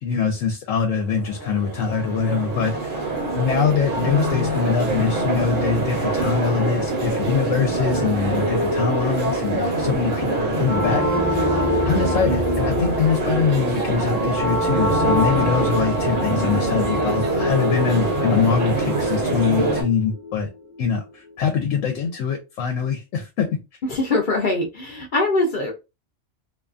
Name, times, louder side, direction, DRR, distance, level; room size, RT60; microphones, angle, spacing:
voice 1, 0.0-3.0 3.3-11.4 11.8-20.5 20.8-23.5, left 6 dB, 85° left, 1.0 m, -23 dB
sound 1, 1.0-19.8, right 2 dB, 45° right, 0.8 m, -24 dB
sound 2, 10.6-21.1, left 1 dB, 20° right, 0.5 m, -27 dB
voice 2, 23.8-25.7, left 2 dB, 55° left, 0.6 m, -22 dB
2.6 x 2.3 x 2.4 m
omnidirectional pair, 1.3 m